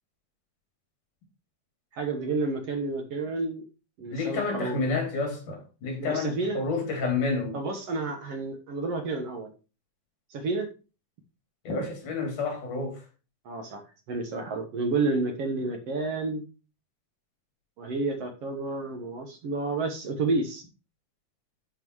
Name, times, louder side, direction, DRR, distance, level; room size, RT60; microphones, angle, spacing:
voice 1, 1.9-3.6 4.0-4.8 6.0-6.6 7.5-9.5 10.3-10.7 13.5-13.8 14.1-16.4 17.8-20.6, right 3 dB, 60° right, 2.0 m, -30 dB
voice 2, 4.1-7.6 11.6-13.0 14.9-15.0, left 3 dB, 80° left, 4.2 m, -30 dB
11.0 x 4.5 x 4.7 m
omnidirectional pair, 3.6 m